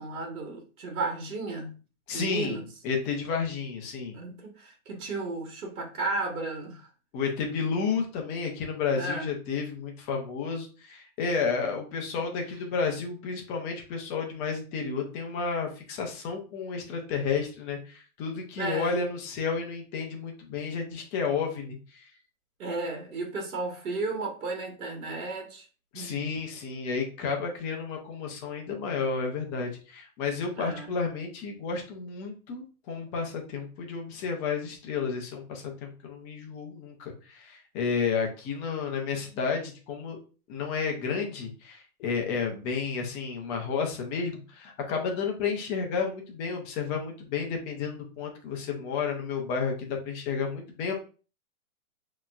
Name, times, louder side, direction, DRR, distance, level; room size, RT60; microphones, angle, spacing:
voice 1, 0.0-1.8 2.1-2.6 4.1-6.9 8.9-9.3 18.6-18.9 22.6-25.6 25.9-26.3 30.6-30.9, right 3 dB, 70° right, 1.6 m, -34 dB
voice 2, 2.1-4.2 7.1-22.0 25.9-40.2 40.5-50.9, left 5 dB, 15° left, 0.6 m, -31 dB
6.5 x 3.0 x 2.4 m
hypercardioid pair, 150°, 44 cm